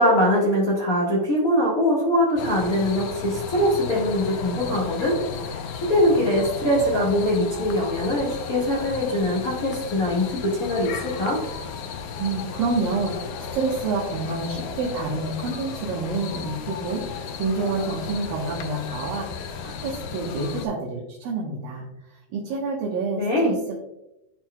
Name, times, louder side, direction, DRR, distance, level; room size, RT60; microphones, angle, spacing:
voice 1, 0.0-5.2 5.5-5.6 5.9-11.4 23.2-23.5, left 1 dB, 45° left, -5 dB, 1.1 m, -22 dB
sound 1, 2.4-20.7, left 6 dB, 75° left, 1.9 m, -34 dB
voice 2, 12.2-23.8, right 3 dB, 80° right, -4 dB, 2.8 m, -28 dB
12.0 x 4.5 x 2.2 m, 0.88 s
omnidirectional pair, 4.0 m